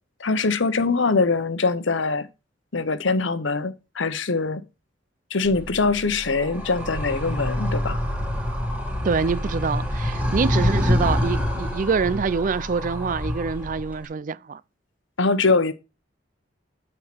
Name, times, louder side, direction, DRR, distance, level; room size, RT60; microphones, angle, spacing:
voice 1, 0.2-2.3 2.7-4.6 5.3-8.0 15.2-15.7, left 3 dB, 75° left, 0.9 m, -23 dB
Animal, 5.4-14.0, left 1 dB, 5° right, 1.9 m, -26 dB
voice 2, 9.0-14.6, right 5 dB, 40° right, 0.4 m, -25 dB
8.5 x 4.9 x 6.0 m
head